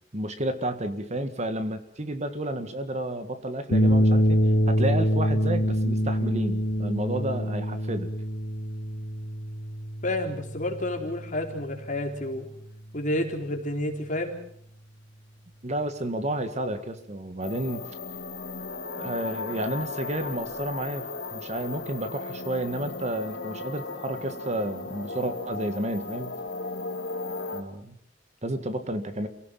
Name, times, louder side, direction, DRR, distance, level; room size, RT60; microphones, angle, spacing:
voice 1, 0.1-4.4 4.7-8.1 15.6-17.8 19.0-26.3 27.5-28.0 28.4-29.3, right 1 dB, 35° right, 9 dB, 1.7 m, -31 dB
sound 1, 3.7-12.2, equal, 80° left, 2.2 m, -25 dB
voice 2, 10.0-12.5 12.9-14.4, left 1 dB, 45° left, 3 dB, 3.7 m, -30 dB
sound 2, 17.4-27.6, left 3 dB, 60° left, 2.5 m, -36 dB
27.5 x 17.5 x 7.5 m, 0.69 s
head